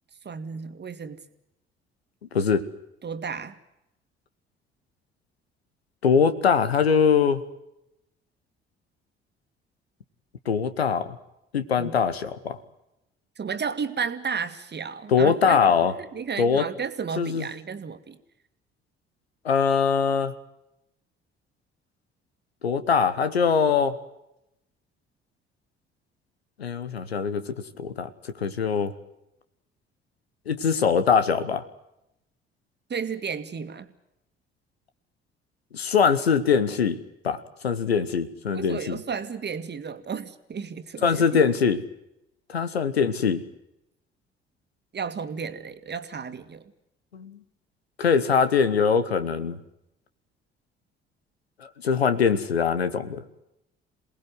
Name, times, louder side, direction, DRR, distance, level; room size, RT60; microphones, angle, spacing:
voice 1, 0.3-1.2 3.0-3.6 11.8-12.0 13.4-15.6 16.0-18.2 32.9-33.9 38.5-41.4 44.9-46.6, right 6 dB, 35° right, 10 dB, 2.0 m, -33 dB
voice 2, 2.3-2.7 6.0-7.4 10.5-11.1 11.5-12.6 15.1-15.9 16.4-16.7 17.2-17.5 19.4-20.3 22.6-24.0 26.6-28.9 30.5-31.6 35.7-37.0 37.2-39.0 41.0-41.8 42.5-43.4 47.1-47.4 48.0-49.6 51.6-53.2, left 6 dB, 80° left, 12 dB, 1.2 m, -22 dB
27.5 x 19.5 x 7.9 m, 0.86 s
figure-of-eight pair, 45°, 31 cm